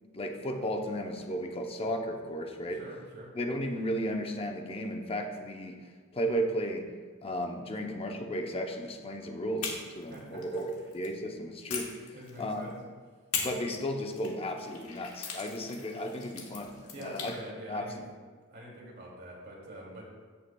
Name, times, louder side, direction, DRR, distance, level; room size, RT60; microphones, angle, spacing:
voice 1, 0.1-2.8 3.3-6.9 7.2-11.9 12.4-12.6 13.4-17.3 17.6-17.9, equal, 25° left, 3 dB, 0.7 m, -34 dB
voice 2, 2.8-3.3 10.1-10.4 12.1-12.8 16.9-18.0 18.5-20.1, right 1 dB, 50° right, -4 dB, 2.4 m, -45 dB
sound 1, 9.6-11.1 11.7-12.7 13.3-17.4, left 5 dB, 90° left, 1.4 m, -40 dB
15.5 x 5.7 x 2.3 m, 1.5 s
head